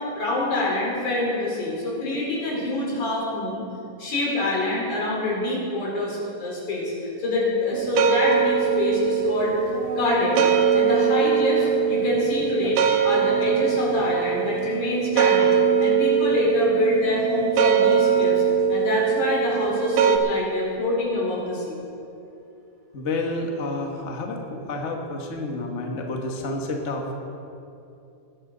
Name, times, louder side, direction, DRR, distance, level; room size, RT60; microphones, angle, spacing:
voice 1, 0.0-3.7 4.0-6.9 7.2-9.6 10.0-18.4 18.7-21.8, left 2 dB, 70° left, -5 dB, 5.5 m, -26 dB
sound 1, 7.7-20.2, right 7 dB, 90° right, 2.5 m, -21 dB
voice 2, 22.9-27.1, left 2 dB, 50° left, 1 dB, 0.8 m, -29 dB
20.5 x 11.0 x 3.9 m, 2.7 s
omnidirectional pair, 3.6 m